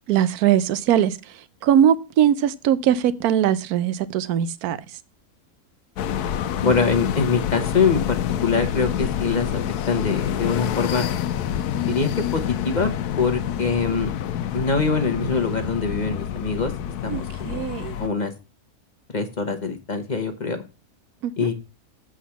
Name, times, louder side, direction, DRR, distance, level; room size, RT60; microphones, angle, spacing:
voice 1, 0.1-1.2 1.6-4.8 17.1-18.0 21.2-21.5, right 10 dB, 80° right, 1.2 m, -20 dB
sound 1, 6.0-18.1, left 10 dB, 85° left, 1.2 m, -27 dB
voice 2, 6.6-8.0 8.4-9.6 9.9-11.0 11.8-12.9 13.2-14.1 14.5-16.7 17.0-17.6 18.0-18.3 19.1-20.6 21.4-21.5, left 5 dB, 30° left, 1.0 m, -23 dB
8.1 x 5.0 x 5.7 m
omnidirectional pair, 1.6 m